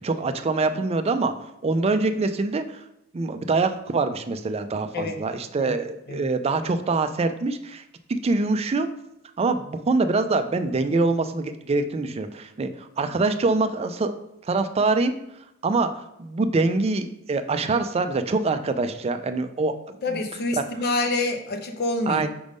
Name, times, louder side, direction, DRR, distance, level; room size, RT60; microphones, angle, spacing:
voice 1, 0.0-1.3 1.6-2.8 3.1-7.8 8.1-8.9 9.4-14.1 14.4-15.1 15.6-20.0 22.1-22.3, right 3 dB, 30° right, 9 dB, 0.4 m, -24 dB
voice 2, 20.0-22.2, left 2 dB, 50° left, 5 dB, 0.7 m, -27 dB
5.2 x 3.5 x 5.1 m, 0.81 s
head